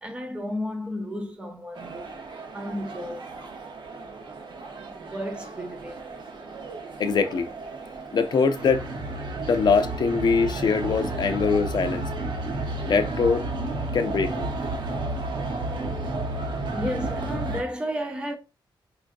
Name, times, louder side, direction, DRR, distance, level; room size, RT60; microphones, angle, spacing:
voice 1, 0.0-2.1 2.5-3.3 5.0-6.2 9.2-9.4 16.7-18.4, equal, 10° right, 0.6 m, -33 dB
sound 1, 1.8-17.6, right 2 dB, 60° right, 0.8 m, -32 dB
voice 2, 7.0-7.5 8.1-8.8 9.5-12.1 12.9-13.4 13.9-14.5, left 5 dB, 55° left, 0.5 m, -23 dB
4.5 x 2.4 x 2.5 m
wide cardioid pair, 160°, 9 cm